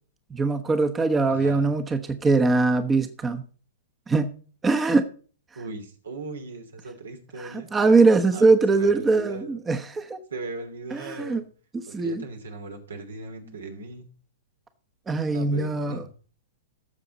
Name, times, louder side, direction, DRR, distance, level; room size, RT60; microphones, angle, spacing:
voice 1, 0.3-3.4 4.1-4.3 4.6-5.1 7.5-10.2 10.9-11.4 11.9-12.2 15.1-16.0, right 3 dB, 15° right, 1.0 m, -22 dB
voice 2, 1.3-1.7 5.5-7.7 8.3-9.6 10.3-11.4 11.9-14.1 15.3-16.1, right 3 dB, 80° right, 2.9 m, -38 dB
18.0 x 7.0 x 4.1 m
hypercardioid pair, 115°, 0 cm